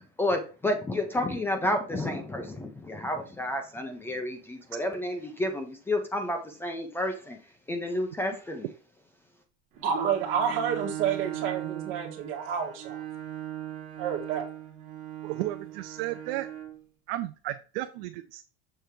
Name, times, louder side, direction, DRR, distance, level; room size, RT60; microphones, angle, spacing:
voice 1, 0.2-7.4 7.7-8.7, left 1 dB, 10° left, 0.4 m, -30 dB
Bowed string instrument, 9.7-16.8, right 13 dB, 25° right, 2.1 m, -39 dB
voice 2, 9.8-13.0 14.0-14.5, right 7 dB, 45° right, 1.7 m, -29 dB
voice 3, 15.2-16.5 17.1-18.4, right 16 dB, 75° right, 0.5 m, -34 dB
6.7 x 3.3 x 4.5 m
cardioid pair, 175°, 29 cm